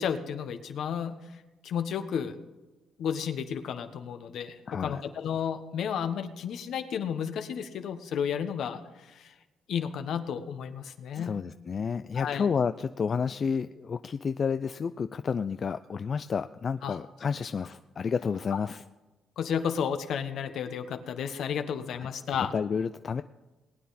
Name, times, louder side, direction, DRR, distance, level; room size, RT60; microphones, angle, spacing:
voice 1, 0.0-2.4 3.0-9.3 9.7-11.4 12.1-12.5 16.8-17.0 18.5-18.6 19.4-22.5, left 8 dB, 70° left, 8 dB, 1.3 m, -32 dB
voice 2, 4.7-5.0 11.1-18.8 22.0-22.1 22.5-23.2, left 6 dB, 45° left, 11 dB, 0.4 m, -30 dB
19.5 x 9.4 x 4.2 m, 1.1 s
cardioid pair, 90°, 0 cm